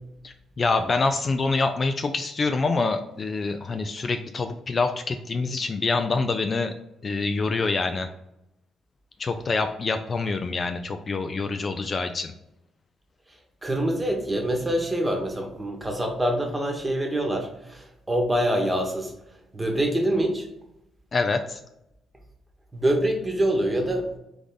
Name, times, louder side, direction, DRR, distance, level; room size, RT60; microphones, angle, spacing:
voice 1, 0.2-6.7 7.0-8.1 9.2-12.3 21.1-21.6, left 3 dB, 40° left, 7 dB, 0.4 m, -26 dB
voice 2, 13.6-19.1 19.5-20.5 22.7-24.1, right 1 dB, 15° right, 3 dB, 1.1 m, -25 dB
3.6 x 3.5 x 3.9 m, 0.85 s
cardioid pair, 90°, 0 cm